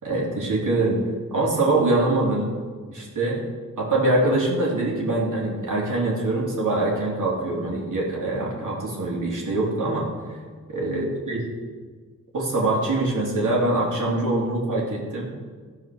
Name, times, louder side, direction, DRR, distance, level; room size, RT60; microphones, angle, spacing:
voice 1, 0.0-1.0 1.3-2.5 2.9-3.4 3.8-10.1 10.7-11.4 12.3-15.4, right 2 dB, 65° right, -3 dB, 3.0 m, -24 dB
14.0 x 4.8 x 6.2 m, 1.5 s
cardioid pair, 65°, 34 cm